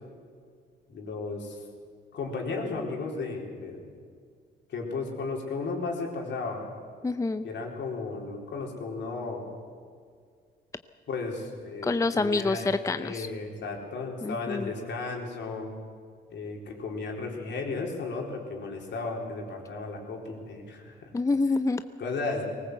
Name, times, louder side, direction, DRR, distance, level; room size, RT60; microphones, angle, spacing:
voice 1, 0.9-1.6 2.1-3.8 4.7-6.6 7.4-9.5 11.1-12.6 13.0-15.7 16.3-21.1 22.0-22.4, left 3 dB, 65° left, 1 dB, 4.1 m, -34 dB
voice 2, 7.0-7.5 11.8-13.3 14.2-14.7 21.1-21.8, left 3 dB, 15° left, 11 dB, 0.6 m, -27 dB
19.5 x 18.5 x 8.1 m, 2.1 s
cardioid pair, 90°, 20 cm